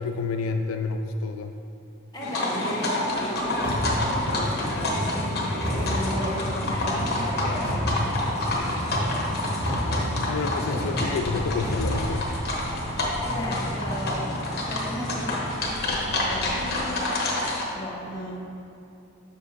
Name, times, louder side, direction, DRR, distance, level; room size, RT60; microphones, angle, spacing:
voice 1, 0.0-1.6 10.3-12.3, left 4 dB, 85° left, 6 dB, 0.3 m, -29 dB
voice 2, 2.1-5.3 5.6-10.5 12.8-14.3 14.7-17.1 17.7-18.3, left 1 dB, 20° left, -7 dB, 1.4 m, -36 dB
sound 1, 2.2-17.6, left 1 dB, 55° left, 1.1 m, -28 dB
sound 2, 3.1-16.8, equal, 20° right, 0.7 m, -37 dB
sound 3, 3.6-12.8, equal, 55° right, 1.6 m, -30 dB
7.0 x 6.8 x 2.8 m, 2.6 s
head